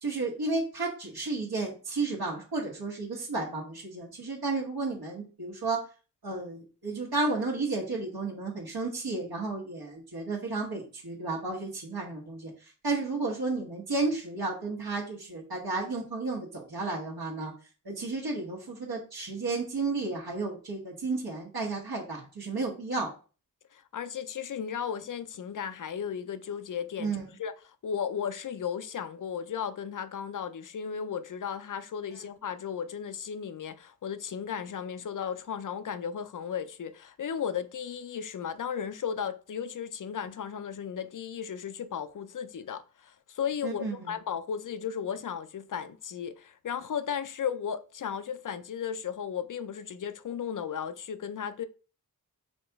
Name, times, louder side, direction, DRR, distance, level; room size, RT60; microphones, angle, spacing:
voice 1, 0.0-5.8 6.2-17.5 17.8-23.1 27.0-27.3 43.6-44.1, right 3 dB, 75° right, 1.3 m, -32 dB
voice 2, 23.7-27.1 27.4-27.5 27.8-51.7, left 7 dB, 55° left, 0.5 m, -35 dB
5.1 x 2.9 x 3.5 m
wide cardioid pair, 80°, 37 cm